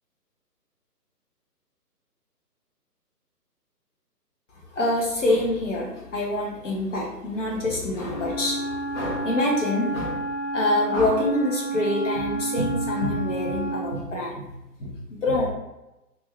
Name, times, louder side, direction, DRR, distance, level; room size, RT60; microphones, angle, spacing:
voice 1, 4.7-10.2 10.5-14.4 14.8-15.5, left 2 dB, 50° left, -3 dB, 1.0 m, -26 dB
Wind instrument woodwind instrument, 8.0-14.1, right 3 dB, 15° right, 0.9 m, -30 dB
2.7 x 2.4 x 3.2 m, 0.95 s
figure-of-eight pair, 140°, 49 cm